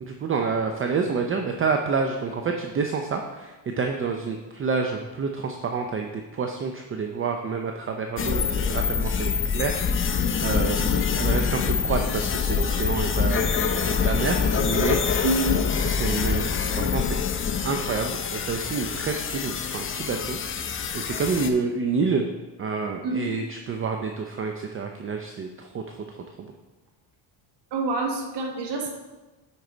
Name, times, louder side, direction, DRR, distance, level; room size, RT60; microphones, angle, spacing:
voice 1, 0.0-15.0 15.9-17.2 17.6-20.4 20.9-22.3 22.6-26.5, right 4 dB, 30° right, 3 dB, 0.6 m, -28 dB
sound 1, 8.2-21.5, left 6 dB, 30° left, 0.6 m, -25 dB
voice 2, 15.2-15.6 23.0-23.4 27.7-28.9, right 2 dB, 60° right, 2 dB, 1.5 m, -26 dB
9.6 x 4.7 x 3.9 m, 1.2 s
cardioid pair, 110°, 46 cm